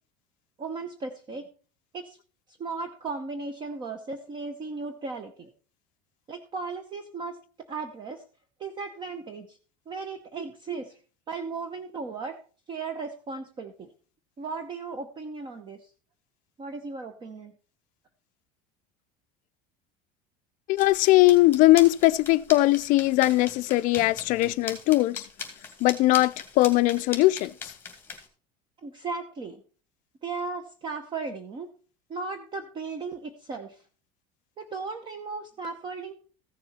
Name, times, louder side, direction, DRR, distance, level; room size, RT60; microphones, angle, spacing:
voice 1, 0.6-1.5 1.9-2.2 2.6-5.5 6.3-7.4 7.7-8.2 8.6-9.6 9.9-11.0 11.3-12.4 12.7-13.9 14.4-15.9 16.6-17.5 28.8-29.6 30.2-31.7 32.1-33.8 34.6-36.1, right 4 dB, 25° right, 0.8 m, -36 dB
voice 2, 20.7-25.2 25.8-27.7, left 18 dB, 45° left, 0.4 m, -20 dB
sound 1, 20.8-28.3, left 5 dB, 10° left, 2.4 m, -41 dB
15.0 x 6.9 x 4.2 m
cardioid pair, 165°, 18 cm